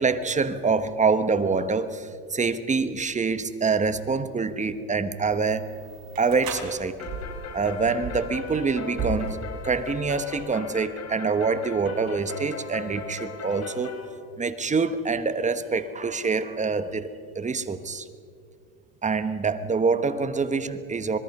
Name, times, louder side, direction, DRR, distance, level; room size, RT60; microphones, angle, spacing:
voice 1, 0.0-5.7 6.2-7.1 7.5-14.0 14.4-17.1 17.3-18.1 19.0-21.2, right 4 dB, 15° right, 11 dB, 1.2 m, -26 dB
sound 1, 5.3-10.6, right 3 dB, 60° right, 5.9 m, -37 dB
sound 2, 7.0-14.1, left 5 dB, 40° left, 3.0 m, -38 dB
26.0 x 20.0 x 5.5 m, 2.2 s
supercardioid pair, 115°, 41 cm